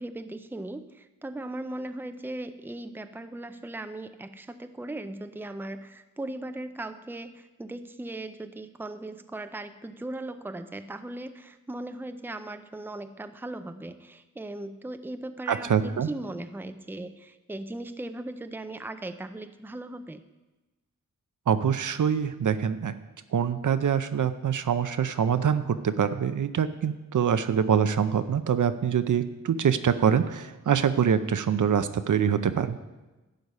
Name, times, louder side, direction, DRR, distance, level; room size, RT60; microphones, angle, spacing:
voice 1, 0.0-20.2, right 2 dB, 5° right, 9 dB, 0.6 m, -38 dB
voice 2, 15.5-16.1 21.5-22.9 23.3-32.8, right 7 dB, 65° right, 11 dB, 0.7 m, -25 dB
11.5 x 7.9 x 5.5 m, 1.1 s
wide cardioid pair, 75°, 33 cm